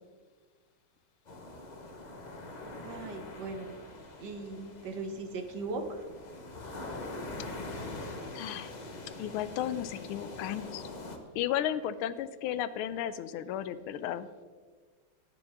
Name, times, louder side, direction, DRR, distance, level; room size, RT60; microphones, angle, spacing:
sound 1, 1.3-11.2, left 2 dB, 55° left, 0.4 m, -43 dB
voice 1, 2.8-3.8 4.2-6.0, right 3 dB, 60° right, 7 dB, 1.3 m, -38 dB
voice 2, 8.3-8.7 9.2-10.8 11.3-14.3, left 11 dB, 80° left, 14 dB, 1.4 m, -34 dB
17.5 x 7.1 x 3.5 m, 1.5 s
omnidirectional pair, 2.4 m